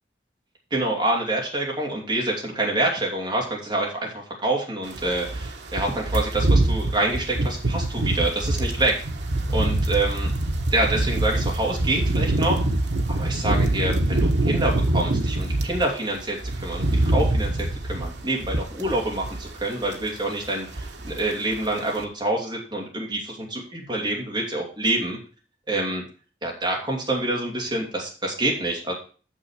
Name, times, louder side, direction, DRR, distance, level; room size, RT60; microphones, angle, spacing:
voice 1, 0.7-4.1 4.4-8.9 9.5-10.3 10.7-12.6 13.1-25.2 25.7-26.0 26.4-28.9, right 2 dB, 25° right, -1 dB, 2.4 m, -26 dB
sound 1, 4.9-15.8 16.2-19.6 19.9-20.1 20.4-21.3 21.5-21.7, right 2 dB, 75° right, 1.2 m, -24 dB
6.7 x 6.5 x 6.4 m, 0.39 s
head